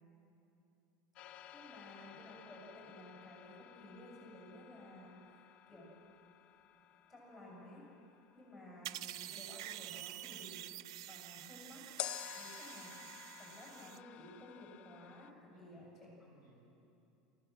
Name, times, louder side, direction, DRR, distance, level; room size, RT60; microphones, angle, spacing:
sound 1, 1.2-9.1 12.0-15.3, left 11 dB, 45° left, 0.9 m, -51 dB
voice 1, 1.5-6.0 7.1-7.8 8.3-16.1, left 1 dB, ahead, -4 dB, 7.4 m, -55 dB
sound 2, 8.8-14.0, right 14 dB, 80° right, 0.4 m, -48 dB
voice 2, 15.3-16.7, right 2 dB, 55° right, -1 dB, 5.8 m, -67 dB
24.0 x 16.5 x 7.7 m, 2.8 s
supercardioid pair, 140°, 3 cm